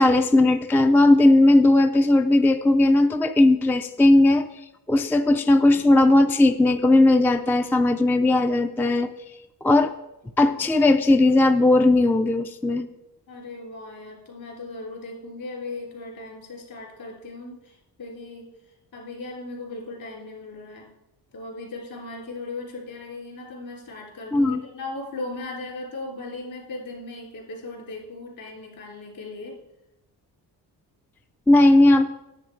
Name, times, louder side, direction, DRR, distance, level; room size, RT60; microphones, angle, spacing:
voice 1, 0.0-4.5 4.9-9.1 9.6-9.9 10.4-12.9 24.3-24.6 31.5-32.1, left 2 dB, 5° left, 8 dB, 0.3 m, -17 dB
voice 2, 13.3-20.9 21.3-29.6, left 2 dB, 55° left, -1 dB, 3.7 m, -37 dB
9.9 x 8.0 x 4.7 m, 0.94 s
cardioid pair, 100°, 40 cm